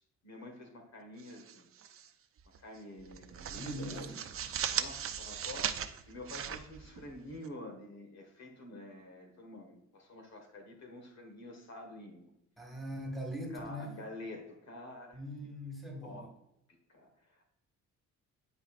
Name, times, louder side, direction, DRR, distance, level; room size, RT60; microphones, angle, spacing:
voice 1, 0.0-1.7 2.6-4.1 4.7-12.3 13.5-15.2 16.0-16.3 16.9-17.4, left 1 dB, 60° left, 3 dB, 1.7 m, -48 dB
sound 1, 1.2-2.1 2.4-2.6 3.0-7.5, right 8 dB, 45° right, 0.6 m, -38 dB
voice 2, 3.5-4.2 12.6-13.9 15.1-16.3, equal, ahead, 1 dB, 1.9 m, -41 dB
9.7 x 4.5 x 2.5 m, 0.82 s
cardioid pair, 90°, 30 cm